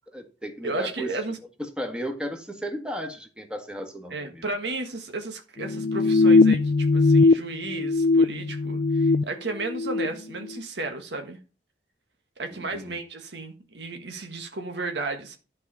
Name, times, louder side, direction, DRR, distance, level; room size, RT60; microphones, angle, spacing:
voice 1, 0.1-1.1 1.8-4.4 12.5-13.0, equal, 5° right, 1.6 m, -34 dB
voice 2, 0.6-1.4 4.1-11.4 12.4-15.4, right 2 dB, 75° right, 1.5 m, -34 dB
sound 1, 5.6-7.3 7.6-9.2 9.6-10.1, left 3 dB, 65° left, 0.4 m, -20 dB
11.5 x 4.8 x 5.5 m
head